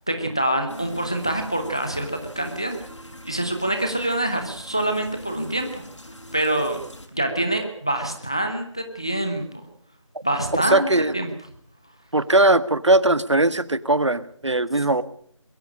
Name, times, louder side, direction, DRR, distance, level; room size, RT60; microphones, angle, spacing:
voice 1, 0.1-2.1 2.4-2.8 3.2-5.8 6.3-6.8 7.1-9.7 10.2-11.3, right 1 dB, 10° left, 6 dB, 0.8 m, -25 dB
sound 1, 0.7-7.1, equal, 70° left, 5.6 m, -41 dB
voice 2, 10.7-11.1 12.1-15.0, right 2 dB, 65° right, 15 dB, 1.4 m, -19 dB
22.5 x 14.0 x 8.6 m, 0.62 s
figure-of-eight pair, 175°, 16 cm